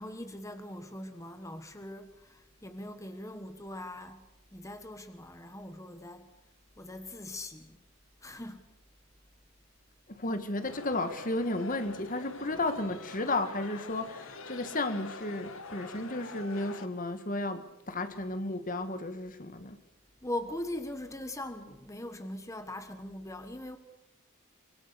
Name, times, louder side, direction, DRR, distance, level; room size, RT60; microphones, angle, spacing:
voice 1, 0.0-6.3 6.8-7.8 8.2-8.7 20.2-23.8, left 1 dB, 15° left, 1.5 m, -41 dB
voice 2, 10.1-19.8, left 2 dB, 40° left, 1.8 m, -33 dB
sound 1, 10.6-16.9, left 3 dB, 65° left, 2.0 m, -45 dB
25.5 x 25.0 x 7.0 m
head